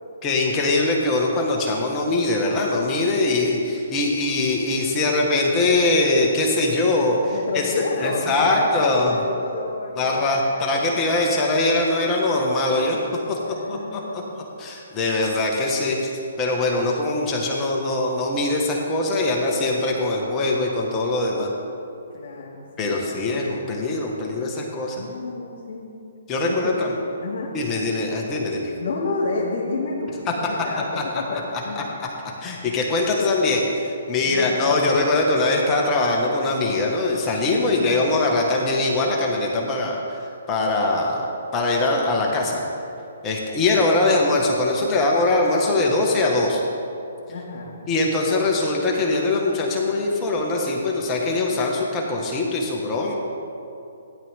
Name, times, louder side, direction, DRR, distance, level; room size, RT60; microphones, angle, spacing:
voice 1, 0.2-7.7 8.0-9.1 10.0-13.0 13.3-14.2 14.6-16.1 16.4-21.5 22.8-25.0 26.3-26.9 27.5-28.7 31.8-31.9 32.4-41.2 41.5-42.6 43.2-46.6 47.9-53.1, left 2 dB, 20° left, -1 dB, 1.7 m, -22 dB
voice 2, 7.3-10.4 10.8-11.0 13.4-14.4 22.1-23.4 25.0-25.9 26.4-26.8 27.2-27.5 28.8-30.9 31.1-31.9 34.2-34.8 37.6-38.0 47.3-47.7, left 3 dB, 60° left, -4 dB, 2.4 m, -30 dB
15.5 x 10.5 x 3.8 m, 2.6 s
figure-of-eight pair, 130°, 0 cm